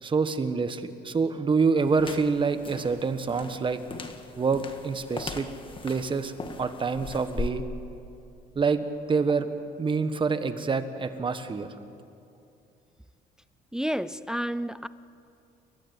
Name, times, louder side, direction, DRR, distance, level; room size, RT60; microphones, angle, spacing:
voice 1, 0.0-3.8 4.4-5.5 5.8-6.3 6.6-7.6 8.5-9.5 9.8-11.7, right 4 dB, 30° right, 10 dB, 1.4 m, -26 dB
sound 1, 1.8-7.5, left 4 dB, 30° left, 1.8 m, -39 dB
voice 2, 13.7-14.9, equal, 5° right, 15 dB, 0.4 m, -30 dB
29.5 x 13.5 x 8.1 m, 2.6 s
cardioid pair, 110°, 17 cm